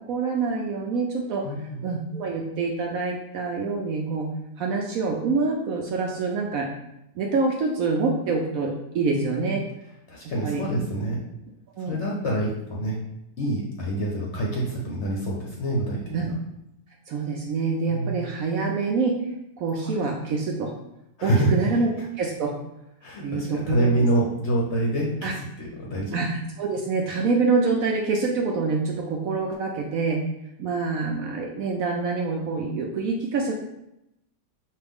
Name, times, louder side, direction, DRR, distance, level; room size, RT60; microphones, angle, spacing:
voice 1, 0.1-1.4 1.8-4.3 4.6-6.7 7.2-9.6 10.4-10.6 11.8-12.0 16.1-16.2 17.1-19.2 19.6-20.7 21.2-21.9 22.2-22.5 23.2-23.9 25.2-25.3 26.1-30.2 30.6-33.5, right 4 dB, 70° right, 0 dB, 0.9 m, -26 dB
voice 2, 1.4-1.8 9.1-9.5 10.1-11.2 11.8-13.0 13.4-16.3 17.9-18.2 19.8-20.0 21.2-21.9 23.0-26.2, right 1 dB, 55° left, -3 dB, 0.9 m, -26 dB
5.3 x 2.5 x 3.5 m, 0.85 s
omnidirectional pair, 1.8 m